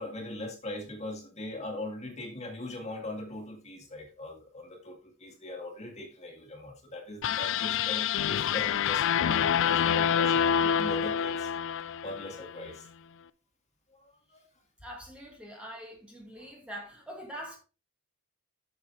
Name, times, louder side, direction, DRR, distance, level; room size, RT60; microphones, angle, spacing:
voice 1, 0.0-11.5 12.0-12.9 13.9-14.5 16.4-16.5, left 2 dB, 30° left, 2.0 m, -40 dB
sound 1, 7.2-12.5, left 8 dB, 60° left, 0.4 m, -27 dB
voice 2, 14.8-17.6, equal, 5° right, 1.6 m, -43 dB
8.0 x 7.0 x 3.3 m
head